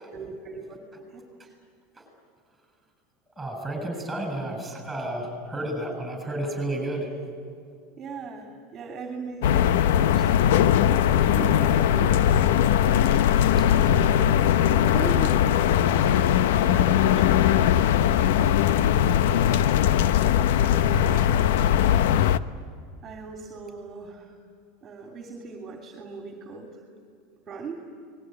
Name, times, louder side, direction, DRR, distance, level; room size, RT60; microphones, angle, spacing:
voice 1, 0.1-0.8 1.1-1.6 8.0-13.0 13.7-15.5 15.8-17.3 21.0-21.5 23.0-24.4 24.8-26.8 27.5-27.8, right 4 dB, 30° right, 2 dB, 3.0 m, -39 dB
voice 2, 3.4-7.1 13.6-13.7 15.9-16.4 17.7-17.8 18.2-20.0 20.6-21.4, right 1 dB, 10° right, 5 dB, 7.6 m, -34 dB
sound 1, 9.4-22.4, left 10 dB, 80° left, 0.8 m, -20 dB
29.5 x 20.5 x 9.7 m, 2.3 s
supercardioid pair, 145°, 0 cm